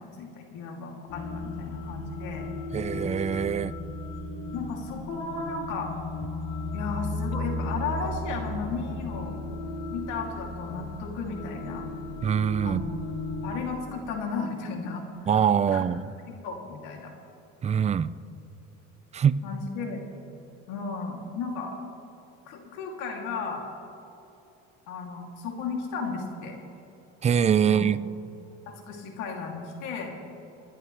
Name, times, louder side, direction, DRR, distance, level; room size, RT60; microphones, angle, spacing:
voice 1, 0.0-2.5 4.0-4.1 4.5-5.9 6.7-9.4 9.9-11.9 12.6-13.0 13.4-15.3 15.7-15.9 16.4-17.1 19.4-20.0 20.7-21.8 22.5-23.7 24.9-26.6 27.6-27.9 28.7-30.1, left 4 dB, 75° left, 1 dB, 2.8 m, -34 dB
sound 1, 1.1-13.6, left 2 dB, 90° left, 2.5 m, -35 dB
voice 2, 2.7-3.7 12.2-12.8 15.3-16.1 17.6-18.1 19.1-19.4 27.2-28.0, right 8 dB, 20° right, 16 dB, 0.4 m, -23 dB
27.5 x 11.0 x 3.3 m, 3.0 s
supercardioid pair, 105°, 31 cm